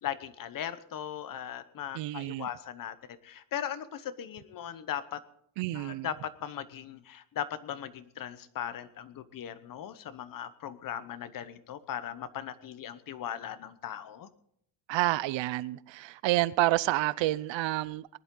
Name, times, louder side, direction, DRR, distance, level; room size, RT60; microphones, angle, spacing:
voice 1, 0.0-5.2 5.7-14.3, left 10 dB, 45° left, 14 dB, 1.0 m, -38 dB
voice 2, 1.9-2.5 5.6-6.1 14.9-18.1, right 17 dB, 75° right, 19 dB, 0.7 m, -29 dB
20.0 x 11.0 x 3.8 m, 0.71 s
cardioid pair, 150°, 46 cm